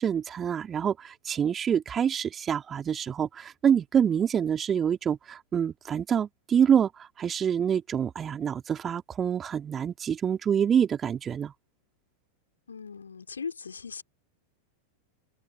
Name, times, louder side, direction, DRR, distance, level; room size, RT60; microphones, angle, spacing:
voice 1, 0.0-6.9 7.2-11.5, right 8 dB, 25° right, 3.6 m, -26 dB
voice 2, 12.7-14.0, left 5 dB, 75° left, 3.4 m, -38 dB
open air
figure-of-eight pair, 90°, 0 cm